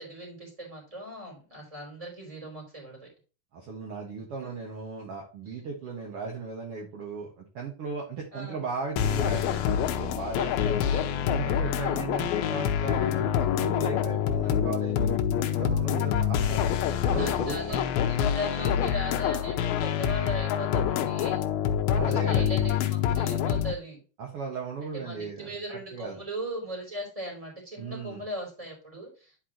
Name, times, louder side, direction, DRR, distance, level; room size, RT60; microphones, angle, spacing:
voice 1, 0.0-3.1 4.4-4.6 5.5-5.6 8.3-8.6 10.6-11.2 11.8-12.1 17.2-21.4 22.0-24.0 24.8-29.4, equal, 10° right, -1 dB, 3.3 m, -38 dB
voice 2, 3.5-10.7 11.3-16.6 17.1-17.6 21.9-22.6 24.2-25.5 25.9-26.2 27.8-28.2, right 4 dB, 50° right, -1 dB, 1.9 m, -36 dB
sound 1, 9.0-23.7, left 9 dB, 80° left, 2.5 m, -26 dB
11.0 x 4.8 x 3.0 m, 0.35 s
omnidirectional pair, 4.5 m